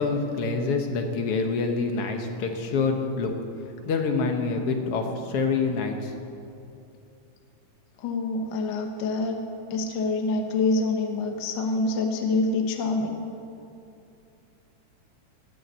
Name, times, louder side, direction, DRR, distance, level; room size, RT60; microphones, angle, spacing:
voice 1, 0.0-3.3 3.8-6.1, left 4 dB, 60° left, 4 dB, 1.7 m, -26 dB
voice 2, 8.0-9.4 9.7-13.2, left 3 dB, 75° left, 4 dB, 1.0 m, -26 dB
17.5 x 7.1 x 8.1 m, 2.6 s
omnidirectional pair, 3.6 m